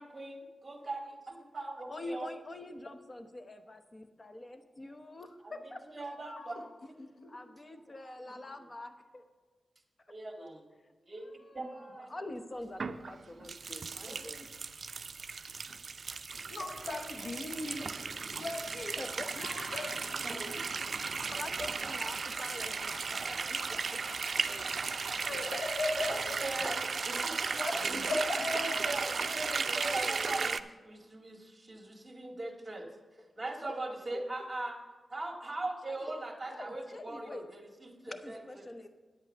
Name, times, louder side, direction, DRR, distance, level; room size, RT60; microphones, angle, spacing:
voice 1, 0.0-2.3 5.4-6.7 8.2-8.3 10.1-10.7 11.0-12.1 14.0-14.2 20.2-20.6 26.4-26.7 27.1-27.4 27.9-28.2 28.5-32.9 33.4-34.8 35.1-38.4, right 2 dB, 25° right, 2 dB, 1.9 m, -40 dB
voice 2, 1.9-6.7 7.3-9.2 10.8-10.9 11.2-14.5 19.0-20.8 21.3-24.7 25.3-25.4 27.1-27.6 28.4-30.6 35.9-36.1 36.4-37.5 38.0-38.9, left 2 dB, 35° left, 8 dB, 0.9 m, -45 dB
voice 3, 7.0-7.4 16.5-18.0 18.4-19.0 19.4-20.6 24.8-26.4 27.5-28.4, left 2 dB, 65° left, 2 dB, 0.9 m, -38 dB
sound 1, 12.8-30.6, right 5 dB, 60° right, 0.4 m, -35 dB
sound 2, 16.3-27.0, right 1 dB, 10° right, 1.4 m, -50 dB
9.5 x 8.2 x 5.4 m, 1.2 s
cardioid pair, 70°, 0 cm